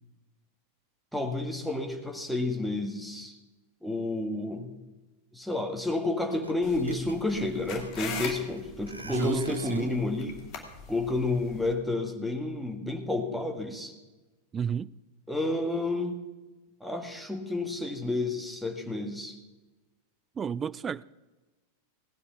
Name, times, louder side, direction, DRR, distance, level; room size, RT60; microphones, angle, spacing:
voice 1, 1.1-3.3 3.8-4.7 5.3-10.4 10.9-13.9 15.3-16.2 16.8-19.4, left 2 dB, ahead, 1.9 m, -30 dB
sound 1, 6.3-6.5 6.8-8.6 8.9-10.0, right 2 dB, 85° right, 0.8 m, -39 dB
sound 2, 6.6-11.7, left 6 dB, 40° left, 2.5 m, -41 dB
voice 2, 9.0-9.9 14.5-14.9 20.4-21.0, right 7 dB, 20° right, 0.4 m, -32 dB
17.5 x 9.6 x 5.8 m
figure-of-eight pair, 90°, 0 cm